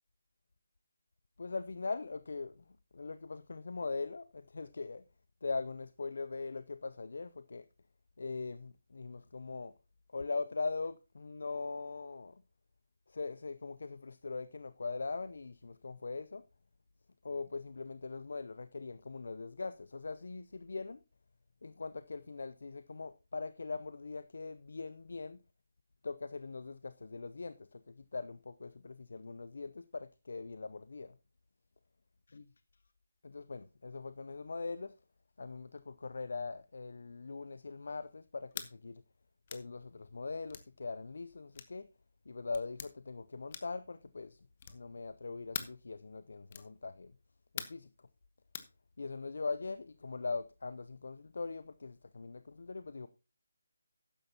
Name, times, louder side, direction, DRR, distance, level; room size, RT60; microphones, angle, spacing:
voice 1, 1.4-2.5 2.9-5.0 5.4-7.6 8.2-9.7 10.1-12.3 13.1-16.4 17.2-21.0 21.6-25.4 26.0-27.8 28.1-31.1 32.3-32.4 33.2-34.9 35.4-39.0 39.5-41.9 42.3-44.4 44.7-47.1 47.5-47.9 49.0-53.1, left 4 dB, 60° left, 0.5 m, -41 dB
sound 1, 38.5-38.7 39.5-39.7 40.5-40.7 41.5-41.8 42.5-42.9 43.5-43.8 44.6-44.9 45.5-45.8 46.5-46.7 47.6-47.9 48.5-48.7, left 7 dB, 35° left, 1.2 m, -43 dB
13.0 x 10.0 x 2.8 m
figure-of-eight pair, 155°, 0 cm